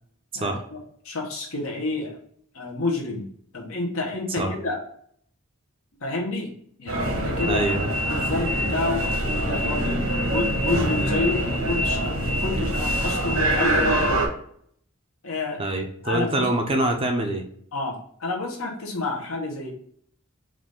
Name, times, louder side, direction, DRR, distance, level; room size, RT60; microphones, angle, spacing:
voice 1, 0.3-0.8 1.0-2.2 2.5-3.3 3.5-4.8 6.0-6.5 6.8-7.6 7.9-14.2 15.2-15.6 16.0-16.5 17.7-19.7, left 2 dB, 75° left, -1 dB, 1.3 m, -29 dB
sound 1, 6.9-14.3, right 1 dB, 80° right, 1.2 m, -24 dB
voice 2, 7.4-7.9 15.6-17.5, right 1 dB, 25° right, 4 dB, 0.5 m, -25 dB
4.9 x 2.7 x 3.6 m, 0.64 s
head